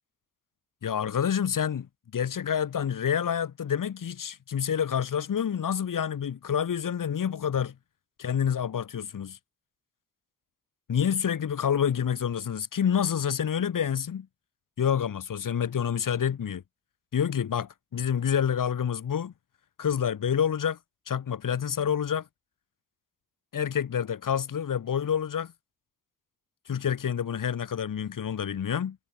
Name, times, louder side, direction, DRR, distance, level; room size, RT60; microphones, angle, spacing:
voice 1, 0.8-1.9 2.1-7.7 8.2-9.4 10.9-14.3 14.8-16.6 17.1-19.3 19.8-20.8 21.1-22.3 23.5-25.5 26.7-29.0, left 8 dB, 65° left, 7.6 m, -28 dB
supercardioid pair, 45°, 34 cm